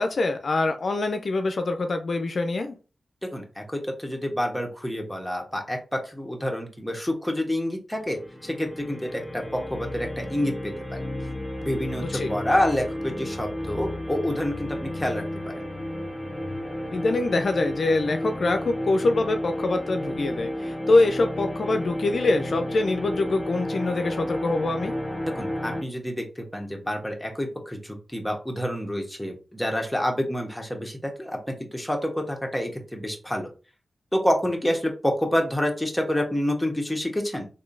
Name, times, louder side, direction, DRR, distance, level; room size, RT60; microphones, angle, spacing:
voice 1, 0.0-2.8 12.1-12.3 16.9-25.0, left 2 dB, 65° left, 6 dB, 0.4 m, -24 dB
voice 2, 3.2-11.1 11.6-15.7 25.3-31.4 31.7-33.5 34.1-37.5, left 1 dB, 5° left, 1 dB, 1.1 m, -28 dB
sound 1, 7.9-25.8, left 1 dB, 25° left, 0.7 m, -32 dB
3.6 x 2.6 x 2.5 m, 0.34 s
cardioid pair, 45°, 0 cm